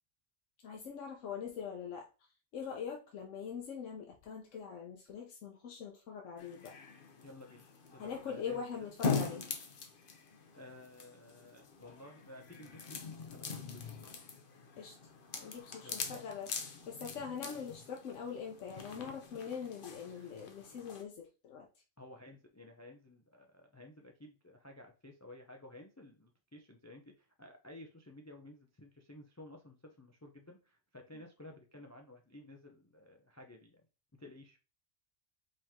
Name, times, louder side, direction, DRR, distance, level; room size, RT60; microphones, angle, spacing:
voice 1, 0.6-2.1 2.5-6.7 8.0-9.5 14.8-14.9 15.4-21.7, left 6 dB, 90° left, 1 dB, 1.1 m, -43 dB
sound 1, 6.4-21.0, left 5 dB, 50° left, 0.9 m, -43 dB
voice 2, 7.2-7.7 7.9-8.9 10.5-13.9 15.8-16.2 20.1-20.3 22.0-33.8 34.1-34.6, left 1 dB, 25° left, 3 dB, 0.3 m, -54 dB
5.1 x 2.9 x 3.5 m, 0.32 s
omnidirectional pair, 1.3 m